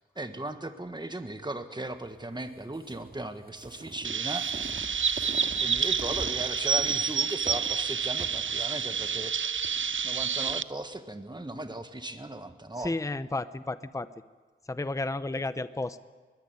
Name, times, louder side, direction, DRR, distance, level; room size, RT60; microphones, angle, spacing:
voice 1, 0.0-4.5 5.6-9.3 10.0-12.9, right 2 dB, 20° right, 8 dB, 1.5 m, -37 dB
sound 1, 2.7-10.6, right 2 dB, 45° right, 2.3 m, -44 dB
Chirp tweet, 4.0-10.6, right 6 dB, 65° right, 0.6 m, -29 dB
voice 2, 12.8-14.1 14.7-16.0, left 2 dB, 15° left, 13 dB, 0.7 m, -32 dB
21.5 x 15.5 x 9.5 m, 1.4 s
wide cardioid pair, 65°, 21 cm